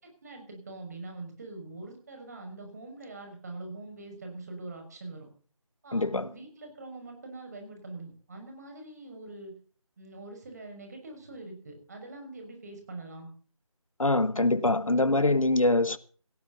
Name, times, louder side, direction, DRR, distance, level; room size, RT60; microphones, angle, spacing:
voice 1, 0.0-5.3 5.8-9.5 10.0-13.3, right 2 dB, 30° right, 6.0 m, -43 dB
voice 2, 5.9-6.3 14.0-16.0, left 2 dB, 70° left, 1.5 m, -24 dB
18.5 x 15.0 x 4.1 m
figure-of-eight pair, 165°, 18 cm